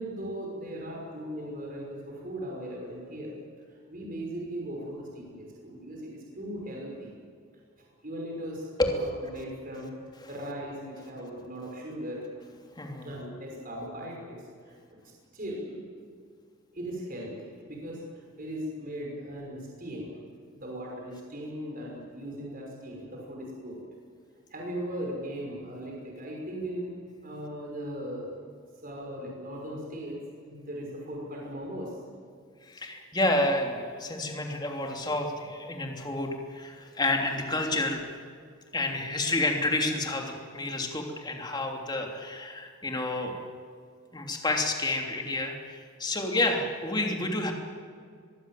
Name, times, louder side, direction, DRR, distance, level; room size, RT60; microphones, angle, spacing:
voice 1, 0.0-3.4 3.9-7.1 8.0-9.9 10.3-12.3 13.0-14.4 14.7-14.8 15.3-15.8 16.7-20.2 20.6-23.8 24.5-26.9 27.2-28.3 28.8-30.2 30.4-31.9, equal, 40° right, -1 dB, 5.8 m, -38 dB
voice 2, 12.8-13.1 32.6-38.0 38.7-43.4 44.1-47.5, left 2 dB, 20° left, 2 dB, 3.1 m, -29 dB
23.5 x 22.5 x 7.7 m, 2.1 s
head